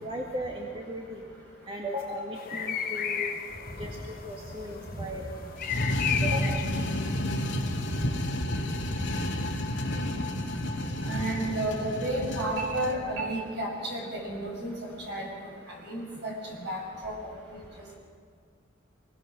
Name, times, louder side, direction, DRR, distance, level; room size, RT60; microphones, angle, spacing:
voice 1, 0.0-1.2 1.7-3.3 3.8-4.0 4.3-5.3 6.2-6.6, equal, 25° right, -1 dB, 1.9 m, -36 dB
sound 1, 2.4-8.1, left 8 dB, 45° left, 1.2 m, -35 dB
sound 2, 5.6-13.0, left 1 dB, 65° left, 2.4 m, -31 dB
voice 2, 11.1-14.7 15.1-15.3 15.8-16.3 16.6-17.2, right 1 dB, 60° right, -2 dB, 6.7 m, -31 dB
26.0 x 21.0 x 6.3 m, 2.1 s
head